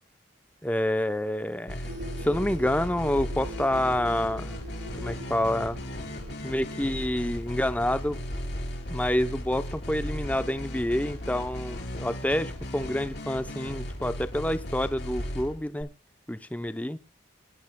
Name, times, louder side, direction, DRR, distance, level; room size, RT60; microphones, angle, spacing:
voice 1, 0.6-1.9 2.2-4.6 5.0-5.8 6.4-8.2 8.9-15.9 16.3-17.0, left 1 dB, 5° left, 11 dB, 0.6 m, -28 dB
sound 1, 1.7-15.8, equal, 55° left, 3.3 m, -36 dB
sound 2, 1.8-9.0, equal, 85° right, 3.4 m, -44 dB
24.0 x 11.5 x 2.2 m, 0.29 s
head